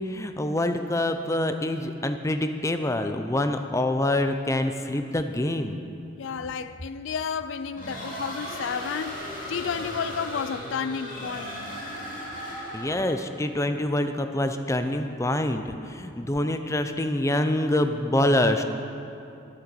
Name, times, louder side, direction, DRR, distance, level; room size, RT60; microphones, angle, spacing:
voice 1, 0.0-5.8 12.7-18.6, left 1 dB, 15° left, 0.5 m, -26 dB
voice 2, 6.2-11.7, left 6 dB, 70° left, 0.4 m, -32 dB
sound 1, 7.8-13.1, equal, 40° left, 2.4 m, -36 dB
11.5 x 9.9 x 6.9 m
head